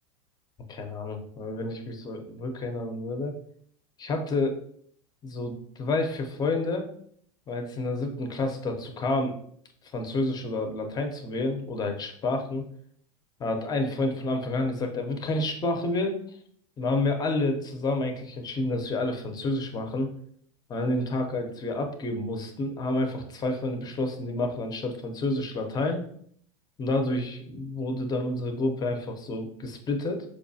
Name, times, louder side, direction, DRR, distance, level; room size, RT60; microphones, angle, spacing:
voice 1, 0.7-3.4 4.0-4.6 5.2-6.9 7.5-9.4 9.9-12.6 13.4-16.2 16.8-20.1 20.7-26.0 26.8-30.2, left 2 dB, 25° left, 5 dB, 0.7 m, -29 dB
4.6 x 2.3 x 2.7 m, 0.62 s
hypercardioid pair, 110°, 16 cm